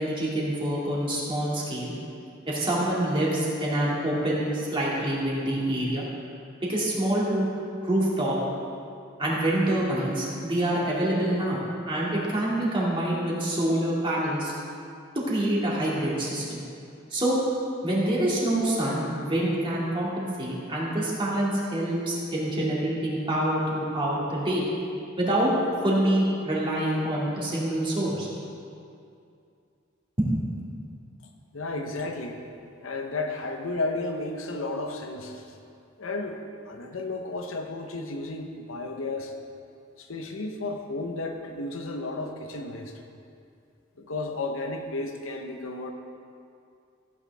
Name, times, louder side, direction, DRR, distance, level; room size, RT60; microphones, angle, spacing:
voice 1, 0.0-1.9 2.5-6.0 6.7-7.5 7.8-8.3 9.2-14.5 15.1-16.6 17.1-17.3 17.8-24.6 25.2-25.5 25.8-28.3 30.2-30.3 30.6-30.7, right 1 dB, 25° right, -6 dB, 2.3 m, -26 dB
voice 2, 31.5-32.4 32.8-35.5 36.0-39.4 40.0-42.9 44.0-45.9, left 2 dB, 90° left, 4 dB, 1.0 m, -33 dB
15.0 x 8.7 x 3.5 m, 2.5 s
head